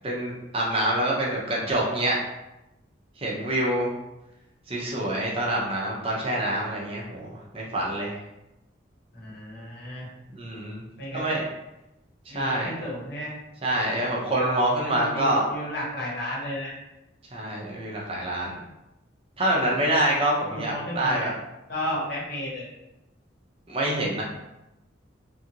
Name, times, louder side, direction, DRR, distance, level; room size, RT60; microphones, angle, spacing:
voice 1, 0.0-2.2 3.2-3.9 4.7-8.2 10.3-10.8 11.1-11.5 12.3-12.7 13.6-15.5 17.3-18.5 19.4-21.3 23.7-24.2, right 1 dB, 30° right, -4 dB, 0.6 m, -26 dB
voice 2, 9.1-10.1 11.0-11.4 12.3-13.3 14.8-16.7 20.5-21.3 21.7-22.7, left 1 dB, 50° left, -6 dB, 1.1 m, -33 dB
2.7 x 2.5 x 2.8 m, 0.94 s
head